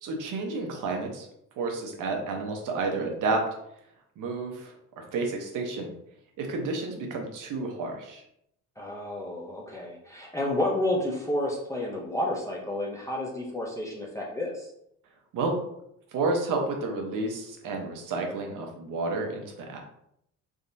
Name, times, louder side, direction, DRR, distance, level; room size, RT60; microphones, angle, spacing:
voice 1, 0.0-1.3 1.6-3.4 4.2-5.9 6.4-8.2 15.3-15.6 16.1-19.8, right 3 dB, 80° right, 2 dB, 0.8 m, -30 dB
voice 2, 8.8-14.7, left 1 dB, 10° left, -4 dB, 0.5 m, -30 dB
3.6 x 2.8 x 2.6 m, 0.76 s
cardioid pair, 150°, 31 cm